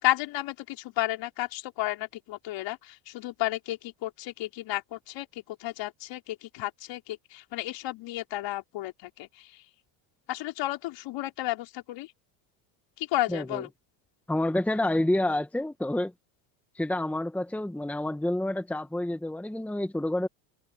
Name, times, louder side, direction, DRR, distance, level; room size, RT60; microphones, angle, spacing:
voice 1, 0.0-9.6 10.3-12.1 13.0-13.7, left 16 dB, 60° left, 4.2 m, -32 dB
voice 2, 13.3-13.6 14.3-16.1 16.7-20.3, left 1 dB, 5° left, 1.4 m, -28 dB
supercardioid pair, 105°, 48 cm